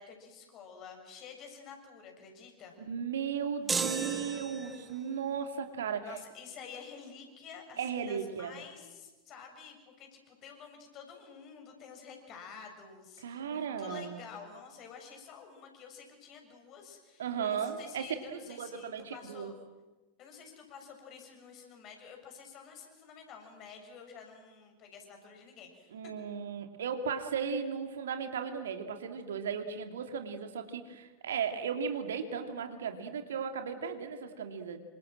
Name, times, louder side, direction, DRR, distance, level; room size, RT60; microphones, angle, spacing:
voice 1, 0.0-2.8 6.0-19.5 20.2-25.9, left 6 dB, 35° left, 3 dB, 7.0 m, -50 dB
voice 2, 2.8-6.1 7.8-8.6 13.2-14.2 17.2-18.1 18.5-19.5 25.9-34.8, right 6 dB, 65° right, 6 dB, 2.7 m, -36 dB
sound 1, 3.7-5.0, right 4 dB, 15° right, 1.5 m, -34 dB
28.5 x 25.5 x 7.7 m, 1.2 s
figure-of-eight pair, 90°, 0 cm